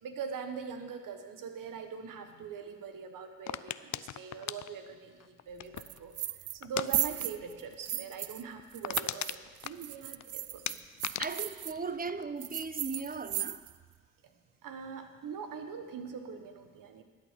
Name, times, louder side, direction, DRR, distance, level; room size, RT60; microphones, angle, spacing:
voice 1, 0.0-6.1 6.5-10.8 14.6-17.0, right 6 dB, 70° right, 7 dB, 1.3 m, -42 dB
sound 1, 3.5-6.0 6.6-6.9 7.2-7.4 7.7-7.8 8.2-8.3 8.6-10.2 10.7-12.7 13.0-13.4, left 12 dB, 55° left, 0.5 m, -38 dB
sound 2, 5.8-6.6 6.9-8.4 8.7-11.7 12.4-13.8, right 12 dB, 45° right, 0.4 m, -36 dB
voice 2, 11.2-13.6, right 4 dB, 25° right, 12 dB, 0.8 m, -37 dB
12.5 x 8.4 x 6.7 m, 1.5 s
supercardioid pair, 45°, 34 cm